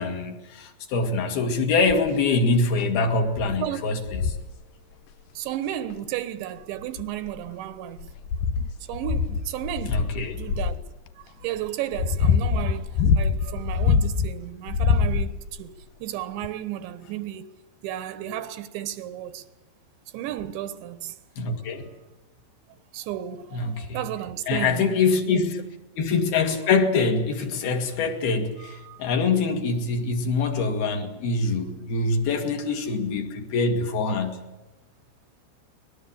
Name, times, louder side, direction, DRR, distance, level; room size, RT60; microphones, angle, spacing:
voice 1, 0.0-4.4 9.9-10.3 21.4-21.8 23.5-24.0 24.5-25.6 26.0-34.4, left 4 dB, 60° left, 4.0 m, -24 dB
sound 1, 1.9-2.2 2.8-2.9 3.3-3.6 4.1-4.5 5.9-6.0 6.8-7.5 8.0-10.8 11.6-14.3 14.7-15.6 16.4-16.5, left 6 dB, 80° left, 1.8 m, -24 dB
voice 2, 5.4-8.1 8.9-10.1 10.3-10.8 11.2-17.5 17.8-19.5 20.1-21.2 22.9-25.0 25.3-25.5 28.6-29.1, right 12 dB, 90° right, 3.6 m, -33 dB
23.5 x 20.0 x 8.7 m
omnidirectional pair, 5.1 m